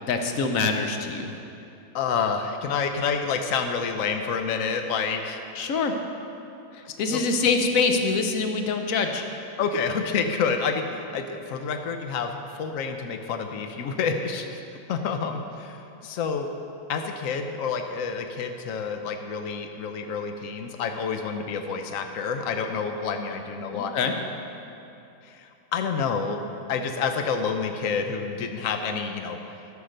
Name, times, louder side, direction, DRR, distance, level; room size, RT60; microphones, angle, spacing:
voice 1, 0.1-1.3 5.6-5.9 7.0-9.2 23.7-24.1, left 4 dB, 60° left, 5 dB, 0.9 m, -24 dB
voice 2, 1.9-5.4 6.8-7.2 9.6-14.6 14.9-16.5 16.9-23.9 25.2-26.4 26.7-29.5, left 5 dB, 90° left, 5 dB, 0.7 m, -28 dB
13.0 x 5.9 x 6.5 m, 2.8 s
omnidirectional pair, 2.2 m